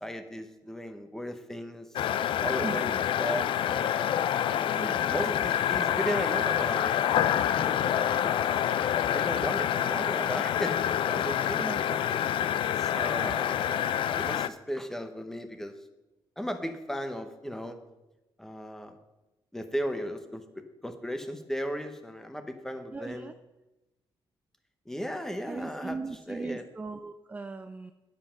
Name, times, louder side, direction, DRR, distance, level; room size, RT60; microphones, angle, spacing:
voice 1, 0.0-2.9 3.2-4.0 4.5-8.6 9.1-10.8 11.1-12.1 12.8-13.9 14.2-15.7 16.4-17.8 18.4-19.0 19.5-23.3 24.9-26.0 26.3-26.6, equal, 5° left, 7 dB, 0.9 m, -36 dB
sound 1, 2.0-14.5, left 10 dB, 70° left, 0.4 m, -27 dB
voice 2, 2.6-3.0 4.8-5.0 11.6-11.8 13.2-13.4 22.9-23.3 25.5-27.9, right 3 dB, 15° right, 8 dB, 0.4 m, -38 dB
9.7 x 7.6 x 5.7 m, 1.0 s
cardioid pair, 135°, 9 cm